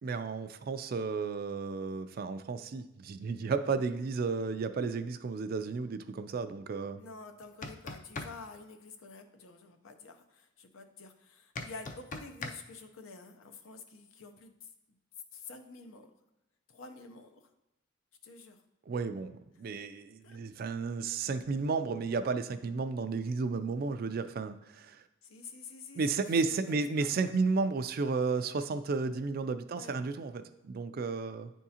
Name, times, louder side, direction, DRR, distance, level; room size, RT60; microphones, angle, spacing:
voice 1, 0.0-7.0 18.9-25.0 26.0-31.5, right 4 dB, 45° right, 10 dB, 0.3 m, -33 dB
voice 2, 7.0-14.7 15.3-16.1 16.7-17.5 18.2-18.6 20.2-20.4 25.2-27.2 29.7-30.0, left 4 dB, 90° left, 7 dB, 0.6 m, -49 dB
sound 1, 7.4-8.3 11.6-12.6, left 3 dB, 40° left, 0.4 m, -39 dB
9.4 x 3.6 x 2.8 m, 0.95 s
head